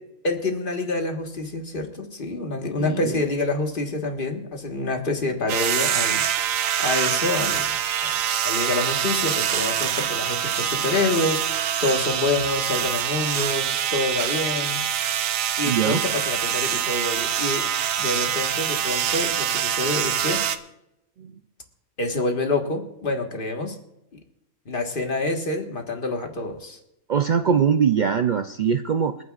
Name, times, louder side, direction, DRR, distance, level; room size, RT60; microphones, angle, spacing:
voice 1, 0.2-7.8 8.0-14.8 15.6-17.7 18.0-20.4 22.0-23.8 24.6-26.8, left 2 dB, 45° left, 3 dB, 1.7 m, -27 dB
voice 2, 2.8-3.1 15.7-16.0 21.2-21.3 27.1-29.2, right 7 dB, 60° right, 8 dB, 0.5 m, -22 dB
sound 1, 5.5-20.6, right 9 dB, 90° right, 1.1 m, -25 dB
28.0 x 9.4 x 2.4 m, 0.85 s
omnidirectional pair, 1.3 m